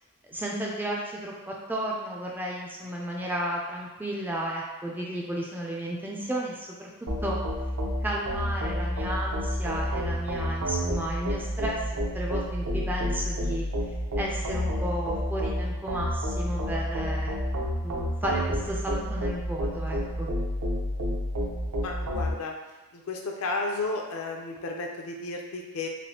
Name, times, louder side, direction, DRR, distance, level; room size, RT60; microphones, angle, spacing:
voice 1, 0.3-6.9 7.2-7.4 8.0-13.6 14.2-17.3 17.8-20.3, right 1 dB, 10° right, -3 dB, 0.3 m, -33 dB
sound 1, 7.1-22.3, equal, 70° right, 0.6 m, -30 dB
voice 2, 21.8-22.5 22.9-25.9, left 3 dB, 70° left, 1 dB, 0.4 m, -33 dB
3.2 x 2.5 x 2.7 m, 1.1 s
head